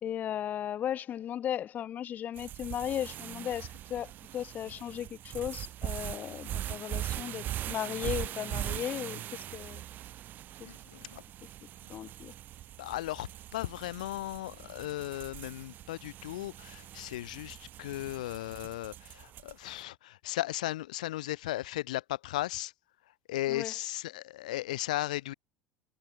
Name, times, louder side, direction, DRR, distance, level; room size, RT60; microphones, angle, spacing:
voice 1, 0.0-9.8 10.6-10.7 11.9-12.3 23.5-23.7, left 10 dB, 45° left, 2.0 m, -36 dB
sound 1, 2.4-19.7, right 13 dB, 50° right, 2.3 m, -41 dB
voice 2, 10.6-11.2 12.8-22.7 23.3-25.3, left 16 dB, 80° left, 1.3 m, -36 dB
hypercardioid pair, 75°, 4 cm